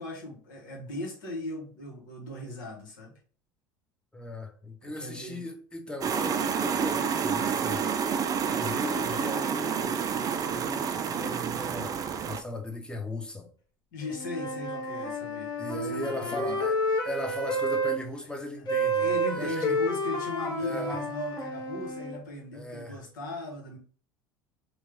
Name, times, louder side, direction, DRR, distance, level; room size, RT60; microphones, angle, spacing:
voice 1, 0.0-3.1 4.8-5.4 13.9-16.6 18.9-23.8, left 2 dB, 80° left, -1 dB, 1.4 m, -38 dB
voice 2, 4.1-7.9 8.4-13.5 15.6-16.8 17.0-19.1 19.4-19.7 20.6-21.0 22.5-23.0, left 1 dB, 10° left, 4 dB, 0.8 m, -37 dB
sound 1, 6.0-12.4, right 6 dB, 35° right, 0.4 m, -29 dB
Wind instrument woodwind instrument, 14.0-18.0 18.7-22.2, right 1 dB, 45° left, 1.1 m, -30 dB
3.1 x 2.4 x 3.4 m, 0.43 s
hypercardioid pair, 80°, 10 cm